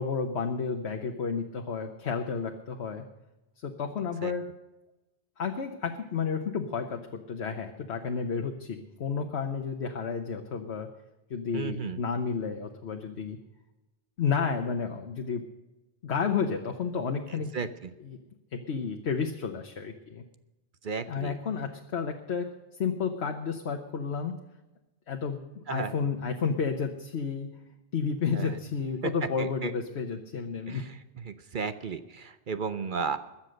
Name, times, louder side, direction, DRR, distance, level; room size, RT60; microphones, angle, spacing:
voice 1, 0.0-3.0 3.6-4.5 5.4-10.9 11.3-13.4 14.2-15.4 16.0-17.5 18.0-18.2 18.5-20.2 21.1-22.5 22.8-24.3 25.1-27.5 27.9-30.9, left 5 dB, 75° left, 4 dB, 1.2 m, -31 dB
voice 2, 11.5-12.0 17.5-17.9 20.8-21.3 25.7-25.9 28.3-28.6 29.0-29.1 29.4-29.7 30.7-30.9 31.2-33.2, right 5 dB, 55° right, 11 dB, 0.8 m, -34 dB
21.0 x 7.2 x 6.5 m, 1.0 s
omnidirectional pair, 1.1 m